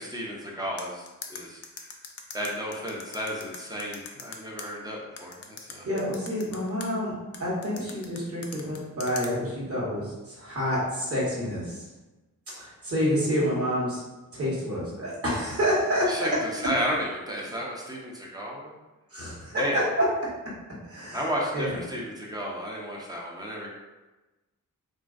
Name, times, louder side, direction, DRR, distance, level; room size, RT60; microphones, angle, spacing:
voice 1, 0.0-1.9 2.3-5.9 16.1-18.7 19.5-19.8 21.1-23.7, equal, 10° right, -3 dB, 0.6 m, -33 dB
sound 1, 0.8-4.7 5.2-6.9 7.3-9.3, left 6 dB, 50° left, 0.5 m, -40 dB
voice 2, 5.8-11.8 12.6-14.0 14.3-16.3 19.1-20.0 20.9-21.2 21.5-21.7, equal, 45° right, -6 dB, 1.3 m, -28 dB
3.0 x 2.5 x 2.4 m, 1.1 s
cardioid pair, 95°, 33 cm